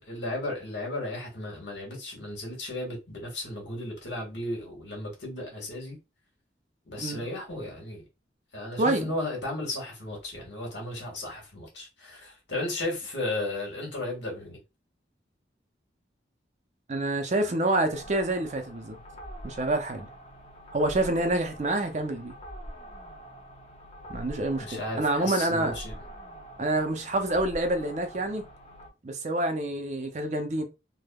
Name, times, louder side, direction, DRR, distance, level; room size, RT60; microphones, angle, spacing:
voice 1, 0.0-6.0 6.9-8.0 8.5-14.6 24.6-26.0, left 1 dB, 75° left, 1.4 m, -35 dB
voice 2, 8.8-9.1 16.9-19.0 19.4-20.1 20.7-22.3 24.1-25.7 26.6-28.5 29.0-30.6, right 2 dB, 40° right, 0.5 m, -27 dB
sound 1, 17.9-28.9, right 1 dB, 35° left, 0.5 m, -45 dB
3.4 x 2.1 x 2.2 m
head